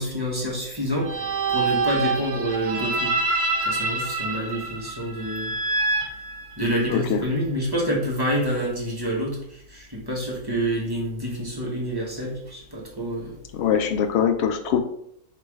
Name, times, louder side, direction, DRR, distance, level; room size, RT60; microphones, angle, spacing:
voice 1, 0.0-3.1 3.6-5.5 6.6-13.4, equal, 20° right, -4 dB, 0.9 m, -27 dB
sound 1, 1.0-7.0, right 3 dB, 60° right, 0.5 m, -26 dB
voice 2, 13.5-14.8, left 8 dB, 65° left, 7 dB, 0.7 m, -22 dB
3.3 x 3.0 x 4.6 m, 0.71 s
omnidirectional pair, 1.5 m